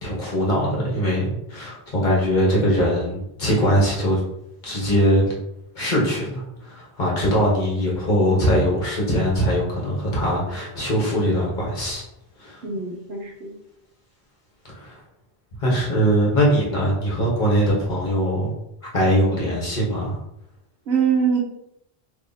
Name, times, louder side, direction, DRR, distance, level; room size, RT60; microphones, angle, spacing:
voice 1, 0.0-4.2 4.6-5.3 5.7-12.0 12.4-12.6 14.6-15.0 15.6-18.5 18.9-20.2, equal, 45° left, -4 dB, 1.2 m, -21 dB
voice 2, 12.6-13.5 19.2-19.3 20.9-21.4, right 6 dB, 75° right, -1 dB, 1.1 m, -23 dB
3.0 x 2.8 x 3.9 m, 0.79 s
omnidirectional pair, 1.1 m